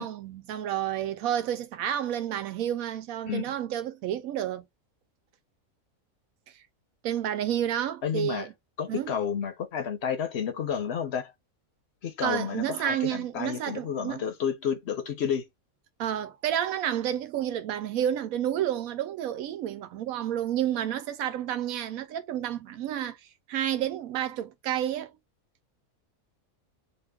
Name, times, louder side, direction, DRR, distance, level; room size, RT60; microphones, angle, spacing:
voice 1, 0.0-4.7 7.0-8.5 8.9-9.1 12.2-14.2 16.0-23.2 23.5-25.2, right 10 dB, 85° right, 1.0 m, -30 dB
voice 2, 8.0-8.5 8.8-11.3 12.0-15.4, left 7 dB, 60° left, 0.8 m, -31 dB
2.7 x 2.4 x 3.4 m
omnidirectional pair, 1.5 m